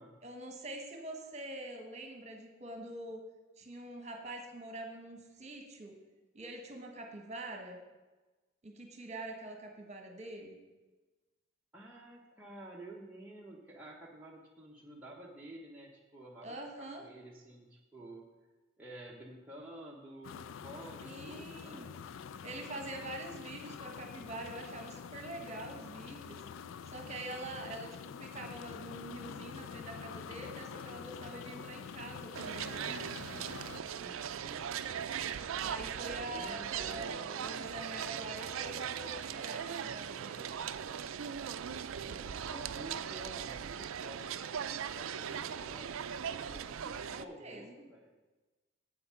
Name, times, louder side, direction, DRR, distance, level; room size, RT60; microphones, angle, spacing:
voice 1, 0.2-3.2 3.6-6.0 6.3-7.8 8.6-10.6 16.4-17.0 21.0-21.9 22.4-26.4 26.9-27.9 28.2-32.9 35.6-40.4 46.9-47.8, right 1 dB, 30° right, 3 dB, 1.3 m, -45 dB
voice 2, 11.7-18.3 18.8-22.0 33.8-34.7 36.2-37.8 42.0-45.9 46.2-48.1, right 1 dB, 5° right, -5 dB, 0.9 m, -51 dB
sound 1, 20.2-33.8, left 7 dB, 65° left, 0.3 m, -46 dB
sound 2, 32.3-47.3, right 8 dB, 70° right, 0.4 m, -39 dB
8.2 x 7.8 x 5.7 m, 1.2 s
head